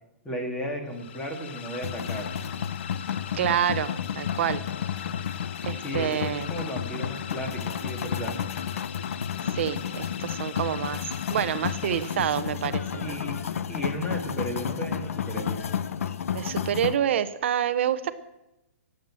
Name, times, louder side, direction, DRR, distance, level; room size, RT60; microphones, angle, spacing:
voice 1, 0.2-2.3 5.8-8.4 13.0-13.4 13.7-15.6, right 1 dB, 10° left, 2 dB, 2.4 m, -34 dB
sound 1, 0.9-12.7, left 9 dB, 50° left, 0.9 m, -41 dB
sound 2, 1.8-17.0, left 8 dB, 80° left, 0.9 m, -32 dB
voice 2, 3.3-4.6 5.6-6.5 9.5-11.0 11.3-13.2 16.3-18.1, right 10 dB, 60° right, 12 dB, 0.8 m, -27 dB
18.5 x 7.9 x 7.6 m, 0.95 s
hypercardioid pair, 165°, 7 cm